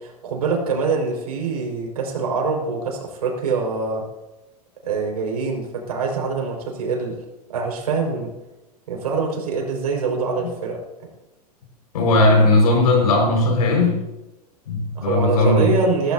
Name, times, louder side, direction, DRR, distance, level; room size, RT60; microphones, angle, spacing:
voice 1, 0.0-4.0 4.8-7.2 7.5-8.3 8.9-10.8 15.0-16.1, right 4 dB, 75° right, 1 dB, 5.6 m, -24 dB
voice 2, 11.9-14.0 14.7-15.7, left 2 dB, 70° left, 2 dB, 5.7 m, -17 dB
17.5 x 16.5 x 2.9 m, 1.0 s
hypercardioid pair, 100°, 20 cm